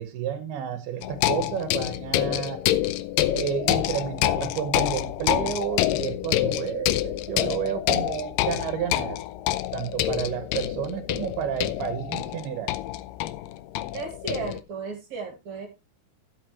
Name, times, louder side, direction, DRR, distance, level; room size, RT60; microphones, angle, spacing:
voice 1, 0.0-2.6 3.3-9.2 9.7-12.7, right 9 dB, 80° right, 9 dB, 3.0 m, -31 dB
sound 1, 1.0-14.6, left 14 dB, 80° left, 2.0 m, -27 dB
voice 2, 13.9-15.7, right 5 dB, 55° right, 5 dB, 3.0 m, -35 dB
12.0 x 10.5 x 2.9 m, 0.25 s
omnidirectional pair, 4.6 m